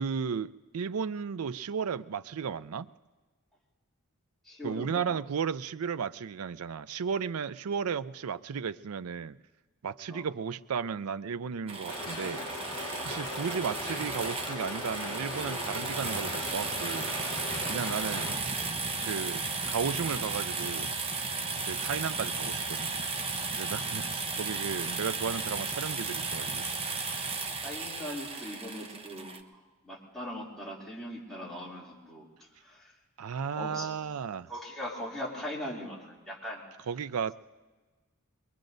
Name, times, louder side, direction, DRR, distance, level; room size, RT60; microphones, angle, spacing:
voice 1, 0.0-2.9 4.6-9.4 9.8-12.5 13.0-18.4 19.0-20.9 21.6-22.9 23.6-26.7 33.2-34.5 36.9-37.3, right 6 dB, 75° right, 0.5 m, -34 dB
voice 2, 4.5-5.0 10.1-10.2 27.6-32.3 32.6-32.8 33.3-33.9 34.5-36.6, equal, ahead, 2.8 m, -40 dB
sound 1, 11.7-29.4, right 4 dB, 25° right, 0.8 m, -34 dB
sound 2, 11.9-18.3, left 2 dB, 20° left, 4.4 m, -38 dB
23.5 x 22.5 x 2.6 m
head